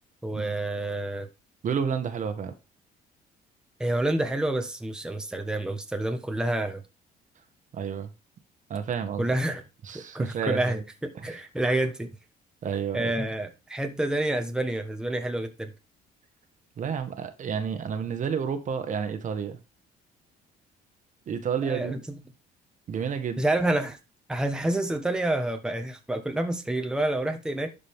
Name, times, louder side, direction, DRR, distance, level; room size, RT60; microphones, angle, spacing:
voice 1, 0.2-1.3 3.8-6.8 9.2-9.6 9.9-12.1 12.9-15.7 21.6-22.2 23.4-24.0 24.3-27.7, right 1 dB, 5° right, 1.3 m, -28 dB
voice 2, 1.6-2.5 7.7-8.1 8.7-9.3 9.8-10.8 11.1-11.4 12.6-13.1 16.8-19.6 21.3-22.0 22.9-23.4, right 7 dB, 50° right, 1.5 m, -30 dB
11.5 x 5.1 x 3.7 m
cardioid pair, 110°, 17 cm